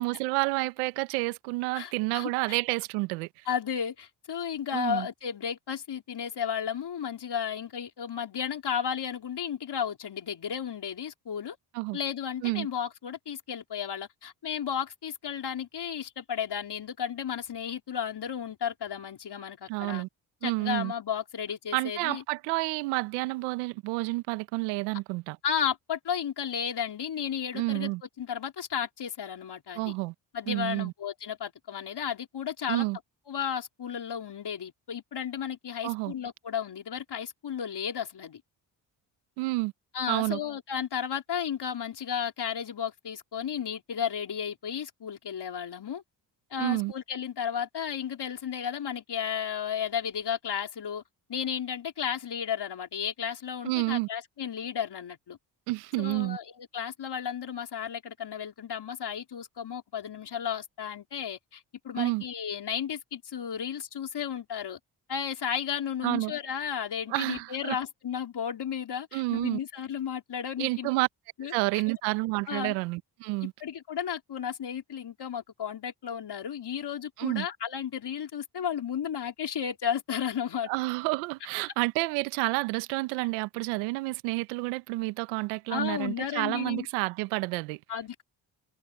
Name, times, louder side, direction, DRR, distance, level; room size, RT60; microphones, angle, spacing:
voice 1, 0.0-3.3 4.7-5.1 11.7-12.0 12.4-12.7 19.7-20.1 20.4-20.9 21.7-25.4 27.5-28.0 29.7-30.1 30.5-30.9 32.7-33.0 35.8-36.1 39.4-39.7 40.1-40.4 46.6-46.9 53.6-54.1 55.7-56.4 62.0-62.2 66.0-66.3 67.1-67.8 69.1-69.6 70.6-71.1 71.5-73.5 77.2-77.5 80.7-87.8, right 23 dB, 85° right, 1.3 m, -29 dB
voice 2, 1.7-2.6 3.5-11.6 11.9-20.0 20.4-22.2 25.4-27.9 28.2-29.9 30.3-32.9 33.3-38.4 39.9-46.0 46.5-51.0 51.3-55.4 56.0-64.8 65.1-70.9 71.4-71.8 72.5-72.7 73.4-80.7 85.7-86.9 87.9-88.2, left 8 dB, 55° left, 3.8 m, -33 dB
hypercardioid pair, 45°, 49 cm